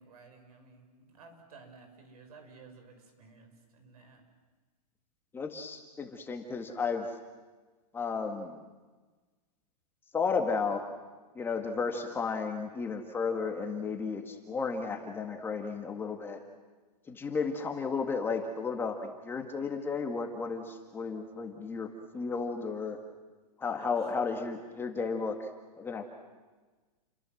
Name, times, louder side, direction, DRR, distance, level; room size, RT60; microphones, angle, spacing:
voice 1, 0.0-4.2 23.8-24.1, right 4 dB, 65° right, 6 dB, 6.9 m, -54 dB
voice 2, 5.3-7.1 7.9-8.6 10.1-10.8 11.4-16.4 17.1-21.9 22.1-23.0 23.6-25.5 25.8-26.1, left 5 dB, 10° left, 4 dB, 1.8 m, -33 dB
29.5 x 23.5 x 7.8 m, 1.3 s
supercardioid pair, 160°, 20 cm